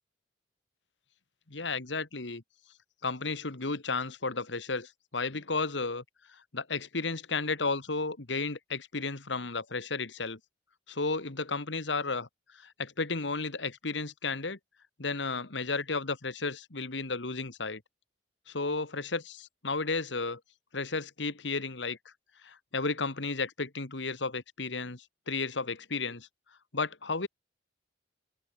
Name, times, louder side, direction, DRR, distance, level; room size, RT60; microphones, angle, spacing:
voice 1, 1.5-2.4 3.0-6.0 6.5-10.4 10.9-12.3 12.6-14.6 15.0-17.8 18.5-20.4 20.7-22.0 22.4-26.3 26.7-27.3, left 3 dB, 75° left, 1.9 m, -33 dB
open air
head